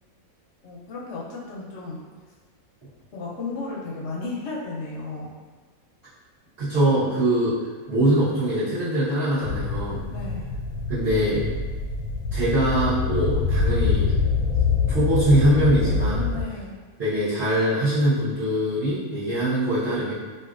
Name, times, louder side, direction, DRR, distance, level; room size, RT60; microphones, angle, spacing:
voice 1, 0.6-2.0 3.1-5.3 10.1-10.5 16.1-16.8, left 3 dB, 60° left, -4 dB, 0.8 m, -34 dB
voice 2, 6.6-7.5 7.9-10.0 10.9-11.4 12.3-14.1 14.9-16.2 17.0-20.1, right 1 dB, 50° right, -16 dB, 1.3 m, -22 dB
sound 1, 9.4-16.4, left 4 dB, 90° left, 1.1 m, -25 dB
3.0 x 2.6 x 2.4 m, 1.4 s
omnidirectional pair, 1.5 m